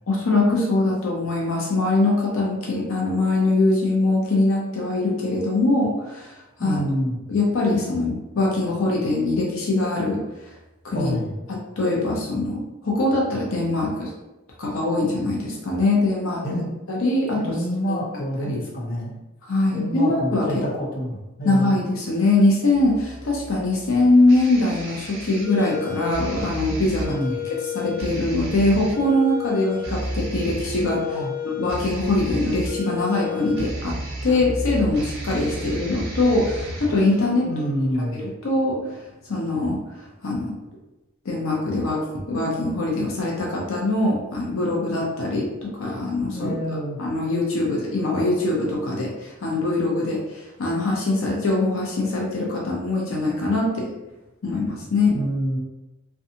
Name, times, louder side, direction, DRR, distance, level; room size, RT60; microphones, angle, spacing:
voice 1, 0.1-6.8 7.3-10.2 10.8-11.1 11.5-14.1 14.6-16.4 16.9-17.5 17.9-18.0 18.4-18.6 19.5-20.8 21.4-27.2 27.7-31.1 31.6-34.0 34.2-37.5 38.1-39.0 39.3-40.6 41.2-42.0 42.3-53.9 54.4-55.2, left 2 dB, 80° left, -2 dB, 0.6 m, -22 dB
voice 2, 6.6-7.2 10.9-11.4 16.4-16.7 17.3-19.1 19.7-21.8 27.0-27.4 31.1-31.4 37.4-38.2 46.3-47.0 55.1-55.6, equal, 45° left, -6 dB, 0.7 m, -27 dB
sound 1, 22.7-37.2, left 2 dB, 50° right, 0.8 m, -32 dB
2.6 x 2.2 x 2.7 m, 1.0 s
head